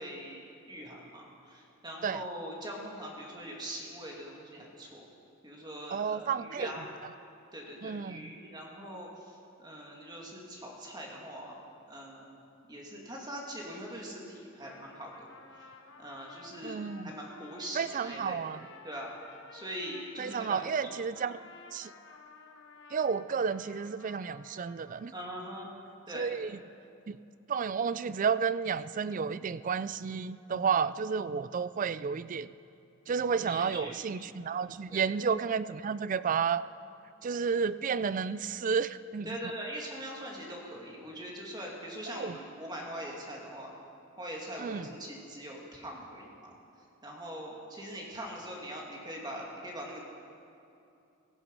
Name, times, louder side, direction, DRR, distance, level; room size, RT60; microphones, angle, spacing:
voice 1, 0.0-5.0 5.4-6.9 7.5-11.6 11.9-12.4 12.7-15.6 16.0-18.4 18.8-20.7 25.1-25.7 26.1-26.3 33.4-34.0 34.9-35.1 39.2-43.7 44.2-46.6 47.0-50.0, equal, 20° right, -2 dB, 2.4 m, -42 dB
voice 2, 5.9-6.7 7.8-8.3 16.6-17.1 17.8-18.6 20.2-21.4 21.7-21.9 22.9-25.1 26.1-26.5 27.1-27.2 27.5-32.5 33.1-36.6 37.2-39.4 42.2-42.4 44.6-44.9, right 6 dB, 40° right, 15 dB, 0.4 m, -31 dB
Trumpet, 14.4-25.3, left 4 dB, 65° left, 1.4 m, -54 dB
17.0 x 15.0 x 5.4 m, 2.7 s
head